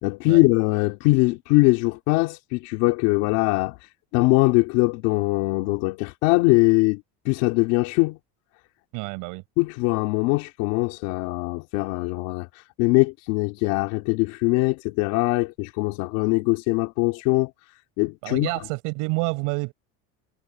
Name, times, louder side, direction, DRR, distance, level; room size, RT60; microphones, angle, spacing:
voice 1, 0.0-3.8 4.1-8.2 9.6-17.5 18.0-18.5, left 23 dB, 85° left, 3.1 m, -22 dB
voice 2, 8.9-9.4 18.2-19.7, right 27 dB, 80° right, 5.5 m, -28 dB
cardioid pair, 160°, 32 cm